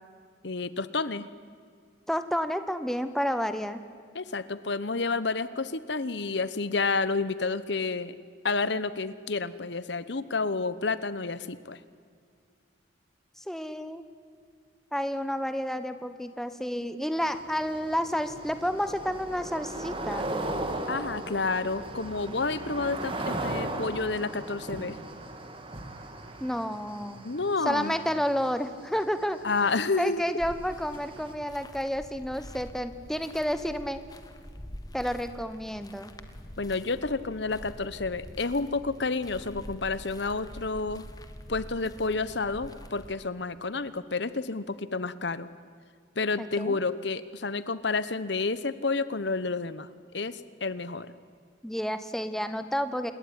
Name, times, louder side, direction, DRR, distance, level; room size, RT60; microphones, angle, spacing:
voice 1, 0.4-1.3 4.1-8.1 8.4-11.8 20.9-25.0 27.2-27.9 29.4-30.3 36.6-41.0 41.5-45.5 46.2-49.9 50.1-51.1, left 3 dB, 60° left, 15 dB, 1.0 m, -30 dB
voice 2, 2.1-3.8 13.4-14.0 14.9-20.3 26.4-27.3 27.6-29.4 30.0-34.0 34.9-36.1 46.4-46.8 51.6-53.1, equal, ahead, 10 dB, 1.2 m, -30 dB
sound 1, 17.2-31.3, right 2 dB, 25° right, 2.5 m, -38 dB
sound 2, 30.4-43.2, left 1 dB, 20° left, 1.6 m, -46 dB
28.0 x 21.0 x 9.8 m, 2.2 s
head